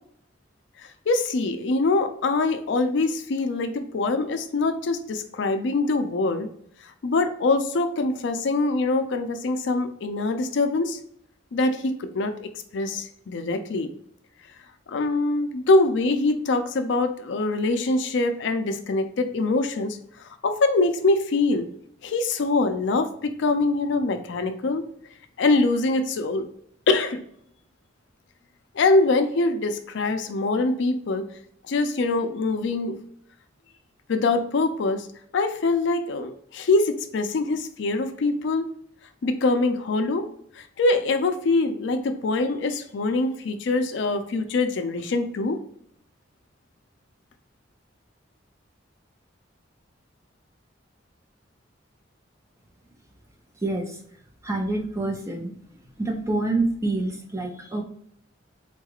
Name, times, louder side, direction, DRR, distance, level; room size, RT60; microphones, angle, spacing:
voice 1, 0.8-6.5 7.0-11.0 11.5-12.3 12.7-13.9 14.9-20.0 20.4-21.7 22.0-24.8 25.4-26.4 26.9-27.2 28.7-31.2 31.7-33.0 34.1-35.1 35.3-38.6 39.2-40.2 40.6-45.6, left 3 dB, 65° left, 8 dB, 0.4 m, -24 dB
voice 2, 53.6-54.0 54.4-55.6 56.0-57.8, right 2 dB, 15° right, 2 dB, 0.6 m, -27 dB
3.9 x 2.3 x 2.9 m, 0.67 s
head